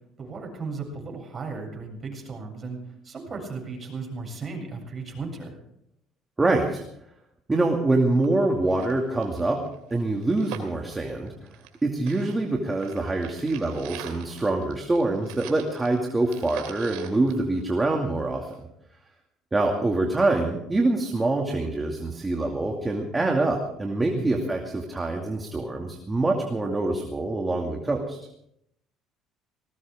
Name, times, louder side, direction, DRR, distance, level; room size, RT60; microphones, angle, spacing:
voice 1, 0.2-5.5 24.1-24.5, right 4 dB, 35° right, 1 dB, 7.9 m, -36 dB
voice 2, 6.4-6.8 7.5-9.6 9.9-11.5 11.8-18.5 19.5-28.2, right 2 dB, 20° right, 1 dB, 2.4 m, -25 dB
sound 1, 7.9-8.0 8.2-8.3 8.6-11.8 12.1-18.2 18.5-18.6, right 10 dB, 85° right, 2.9 m, -43 dB
19.5 x 19.0 x 3.7 m, 0.76 s
supercardioid pair, 90°, 0 cm